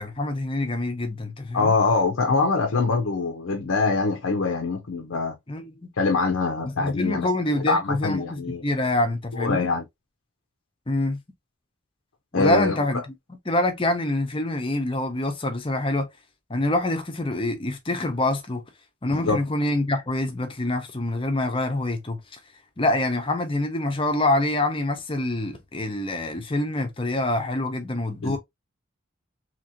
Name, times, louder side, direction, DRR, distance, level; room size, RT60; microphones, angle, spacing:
voice 1, 0.0-1.7 5.5-5.8 6.8-9.7 10.9-11.2 12.3-13.1 13.5-16.1 16.5-18.6 19.0-22.2 22.8-28.4, left 2 dB, 25° left, 0.6 m, -26 dB
voice 2, 1.5-5.3 6.0-7.3 7.5-8.6 9.3-9.8 12.3-12.8 19.1-19.4 28.2-28.4, left 3 dB, 80° left, 0.6 m, -24 dB
2.9 x 2.7 x 2.6 m
head